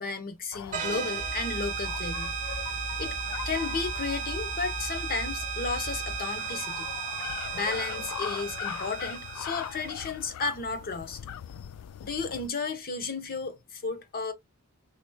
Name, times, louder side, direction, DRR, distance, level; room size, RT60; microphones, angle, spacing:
voice 1, 0.0-2.3 3.0-3.2 3.5-6.9 7.5-11.2 12.0-14.3, left 4 dB, 45° left, 0.8 m, -33 dB
sound 1, 0.5-12.5, left 9 dB, 90° left, 0.3 m, -41 dB
sound 2, 0.7-10.1, right 6 dB, 35° right, 0.9 m, -35 dB
sound 3, 1.2-6.2, equal, ahead, 0.3 m, -39 dB
4.4 x 3.0 x 2.2 m
head